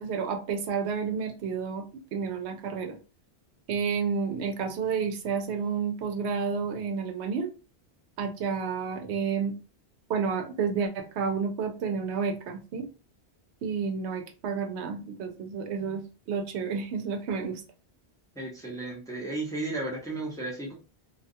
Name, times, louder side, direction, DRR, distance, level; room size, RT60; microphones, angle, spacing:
voice 1, 0.0-1.8 2.1-3.0 3.7-7.5 8.2-9.5 10.1-12.9 13.6-17.6, right 6 dB, 85° right, 4 dB, 0.9 m, -30 dB
voice 2, 18.4-20.7, right 2 dB, 5° left, -4 dB, 0.6 m, -34 dB
2.5 x 2.2 x 2.6 m, 0.36 s
omnidirectional pair, 1.1 m